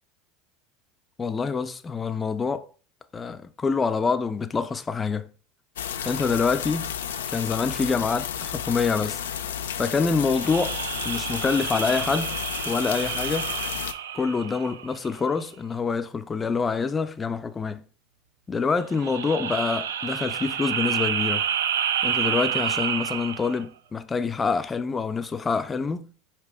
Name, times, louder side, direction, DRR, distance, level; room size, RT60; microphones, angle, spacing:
voice 1, 1.2-2.7 3.1-5.3 6.0-6.9 7.3-9.2 9.8-10.8 11.0-12.4 12.6-13.5 14.1-17.8 18.5-21.5 22.0-26.0, left 5 dB, 25° left, 0.4 m, -26 dB
sound 1, 5.8-13.9, left 9 dB, 85° left, 0.4 m, -32 dB
sound 2, 10.3-15.1 18.9-23.6, right 8 dB, 85° right, 0.3 m, -29 dB
4.6 x 2.9 x 3.5 m
hypercardioid pair, 90°, 0 cm